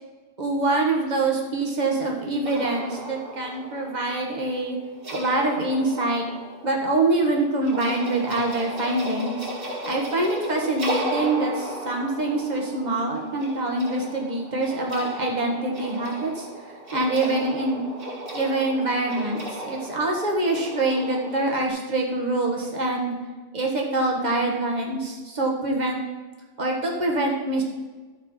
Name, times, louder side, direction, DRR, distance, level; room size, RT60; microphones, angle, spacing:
voice 1, 0.4-4.8 5.1-6.2 6.6-9.5 9.8-16.5 16.9-17.8 18.3-23.1 23.5-26.0 26.6-27.6, right 2 dB, 45° right, 0 dB, 1.7 m, -25 dB
sound 1, 2.5-21.7, right 1 dB, 60° right, 2.0 m, -35 dB
13.0 x 4.6 x 5.6 m, 1.3 s
omnidirectional pair, 1.0 m